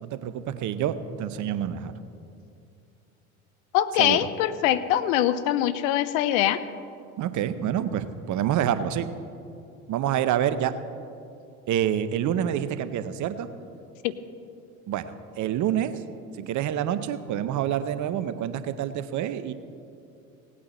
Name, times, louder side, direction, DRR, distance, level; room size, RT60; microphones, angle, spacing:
voice 1, 0.0-1.9 4.0-4.2 7.2-9.1 9.9-10.7 11.7-13.5 14.9-15.9 16.5-19.5, right 10 dB, 45° right, 12 dB, 0.8 m, -27 dB
voice 2, 3.7-6.6 14.0-14.1, left 12 dB, 65° left, 14 dB, 0.8 m, -23 dB
18.0 x 8.7 x 4.2 m, 2.6 s
hypercardioid pair, 70°, 43 cm